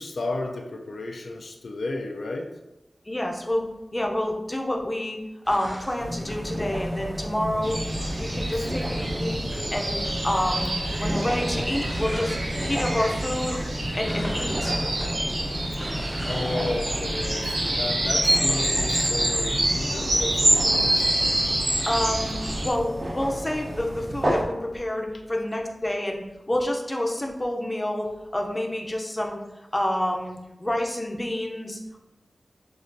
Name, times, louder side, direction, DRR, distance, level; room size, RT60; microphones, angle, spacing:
voice 1, 0.0-2.5 8.5-8.7 15.3-15.8 16.2-21.2, left 2 dB, 80° left, 3 dB, 0.3 m, -33 dB
voice 2, 3.1-3.6 3.9-5.2 5.5-7.8 8.2-9.5 9.7-10.0 10.2-12.4 12.6-13.7 13.9-14.8 21.9-29.4 29.7-32.0, left 1 dB, 20° left, 1 dB, 0.5 m, -28 dB
sound 1, 5.5-7.5 8.0-9.9 10.3-18.7 19.0-19.7, equal, 20° right, 0.9 m, -42 dB
sound 2, 6.0-24.4, equal, 45° right, 0.7 m, -33 dB
sound 3, 7.6-22.7, right 1 dB, 85° right, 1.0 m, -26 dB
6.3 x 2.4 x 2.6 m, 1.0 s
wide cardioid pair, 90°, 0 cm